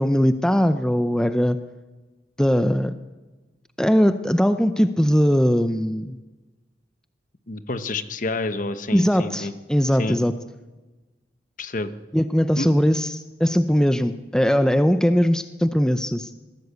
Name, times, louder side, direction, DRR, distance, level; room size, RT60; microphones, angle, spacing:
voice 1, 0.0-1.6 2.4-2.9 3.8-6.2 8.9-10.3 12.1-16.3, equal, 5° left, 10 dB, 0.6 m, -20 dB
voice 2, 7.5-9.5 10.0-10.2 11.6-11.9 12.6-12.7, left 2 dB, 50° left, 11 dB, 1.1 m, -28 dB
21.0 x 16.0 x 8.3 m, 1.2 s
head